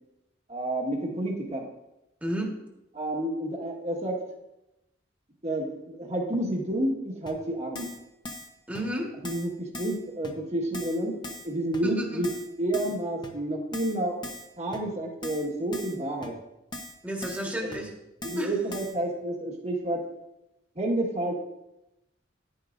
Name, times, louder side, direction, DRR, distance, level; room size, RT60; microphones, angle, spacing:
voice 1, 0.5-1.6 2.9-4.2 5.4-7.9 9.2-11.1 11.4-12.3 12.6-14.2 14.6-16.3 17.6-17.7 18.2-20.0 20.7-21.4, right 1 dB, 35° right, -1 dB, 1.6 m, -30 dB
voice 2, 2.2-2.6 8.7-9.1 11.8-12.2 17.0-17.9 18.4-18.5, equal, 10° right, -1 dB, 1.6 m, -31 dB
Keyboard (musical), 7.3-7.4 7.7-8.0 8.2-8.5 8.7-8.8 9.2-9.5 9.7-10.0 10.2-10.3 10.7-11.0 11.2-11.5 11.7-11.8 12.2-12.5 12.7-13.0 13.2-13.3 13.7-14.0 14.2-14.5 14.7-14.8 15.2-15.5 15.7-16.0 16.2-16.3 16.7-16.9 17.2-17.4 17.7-17.8 18.2-18.4 18.7-18.9, left 1 dB, 25° left, 1.0 m, -39 dB
10.5 x 10.5 x 2.6 m, 0.92 s
head